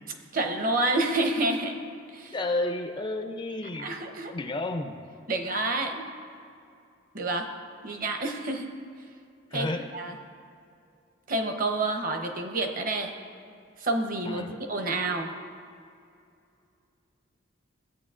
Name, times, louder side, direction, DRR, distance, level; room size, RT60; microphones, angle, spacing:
voice 1, 0.3-1.7 2.1-2.4 3.8-4.3 5.3-6.1 7.1-7.5 7.8-8.7 9.5-10.1 11.3-13.1 13.8-15.3, right 2 dB, 40° right, 4 dB, 0.8 m, -28 dB
voice 2, 2.3-3.9 4.3-5.0 9.5-9.8 14.3-14.6, left 2 dB, 25° left, 6 dB, 0.4 m, -31 dB
15.5 x 8.6 x 2.5 m, 2.5 s
head